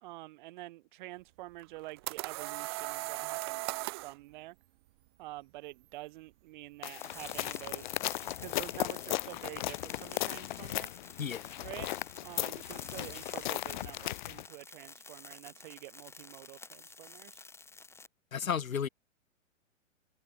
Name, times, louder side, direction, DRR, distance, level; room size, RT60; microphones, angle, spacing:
voice 1, 0.0-3.7 4.0-4.6 5.2-7.9 8.2-10.9 11.6-11.9 12.2-17.4, right 18 dB, 35° right, 1.5 m, -47 dB
sound 1, 1.6-4.2, right 20 dB, 20° right, 0.5 m, -37 dB
sound 2, 6.8-14.5, left 16 dB, 35° left, 0.8 m, -37 dB
sound 3, 7.0-18.1, left 3 dB, 5° left, 7.5 m, -51 dB
voice 2, 11.2-11.5 18.3-18.9, left 7 dB, 90° left, 1.9 m, -33 dB
hypercardioid pair, 145°, 40 cm